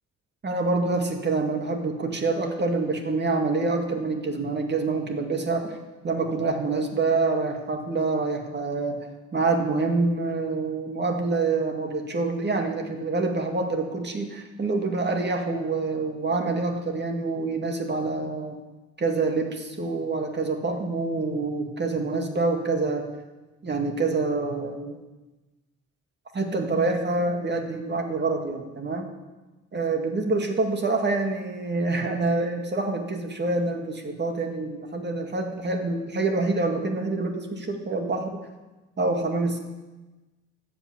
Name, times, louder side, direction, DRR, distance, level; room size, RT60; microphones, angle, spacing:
voice 1, 0.4-5.8 6.0-9.0 9.3-18.6 19.0-23.1 23.6-25.0 26.3-29.1 29.7-38.4 39.0-39.6, right 3 dB, 35° right, 3 dB, 2.0 m, -26 dB
13.5 x 5.7 x 8.4 m, 1.1 s
cardioid pair, 90°, 30 cm